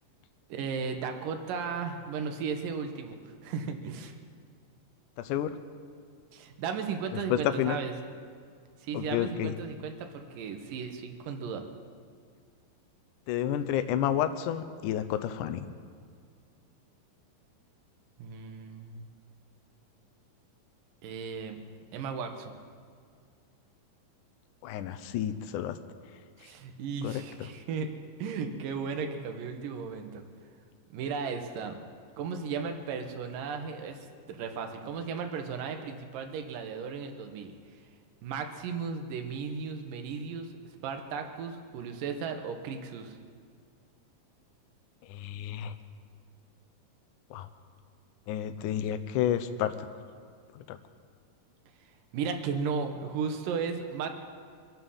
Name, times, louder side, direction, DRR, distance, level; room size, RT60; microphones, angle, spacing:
voice 1, 0.5-4.1 6.3-7.9 8.8-11.6 18.2-19.0 21.0-21.6 21.9-22.5 26.4-27.9 28.2-30.2 30.9-31.8 32.2-37.5 38.2-40.5 40.8-43.2 52.1-54.1, right 5 dB, 70° right, 5 dB, 2.7 m, -35 dB
voice 2, 5.2-5.6 7.3-7.8 8.9-9.5 13.3-15.7 24.6-25.8 27.0-27.1 45.1-45.7 47.3-47.5 48.3-49.7 50.6-50.8, left 10 dB, 75° left, 10 dB, 2.0 m, -30 dB
25.0 x 8.9 x 5.6 m, 2.1 s
omnidirectional pair, 4.1 m